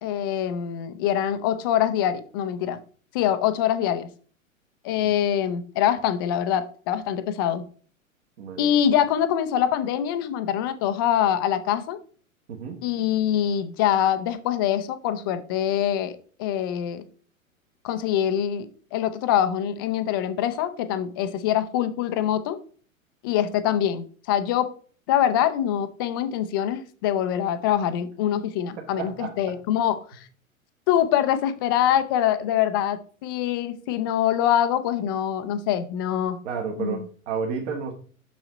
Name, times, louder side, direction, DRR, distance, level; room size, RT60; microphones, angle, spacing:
voice 1, 0.0-2.8 3.1-4.1 4.8-7.6 8.6-12.0 12.8-17.0 17.8-22.6 23.2-24.7 25.1-30.2 30.9-36.4 36.8-37.1, left 10 dB, 20° left, 11 dB, 0.3 m, -24 dB
voice 2, 8.4-8.8 12.5-12.8 28.8-29.6 36.4-37.9, right 5 dB, 55° right, 0 dB, 1.5 m, -32 dB
6.3 x 6.1 x 3.9 m, 0.43 s
figure-of-eight pair, 105°, 41 cm